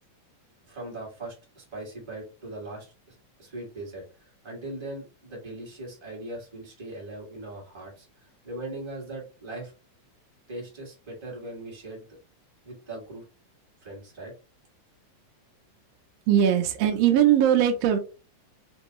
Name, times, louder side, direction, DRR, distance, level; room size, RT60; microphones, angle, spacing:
voice 1, 0.6-9.7 10.5-12.1 12.6-13.2 13.8-14.3, right 2 dB, 10° right, -3 dB, 1.5 m, -40 dB
voice 2, 16.3-18.0, right 10 dB, 80° right, 4 dB, 1.4 m, -20 dB
4.5 x 3.2 x 3.0 m, 0.32 s
omnidirectional pair, 3.5 m